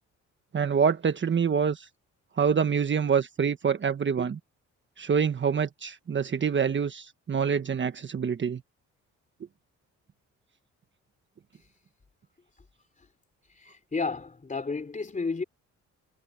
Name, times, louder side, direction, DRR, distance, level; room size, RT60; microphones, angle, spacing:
voice 1, 0.5-1.9 2.4-4.4 5.0-8.6, right 6 dB, 40° right, 1.3 m, -26 dB
voice 2, 13.6-15.4, left 4 dB, 25° left, 3.7 m, -32 dB
cardioid pair, 90°, 30 cm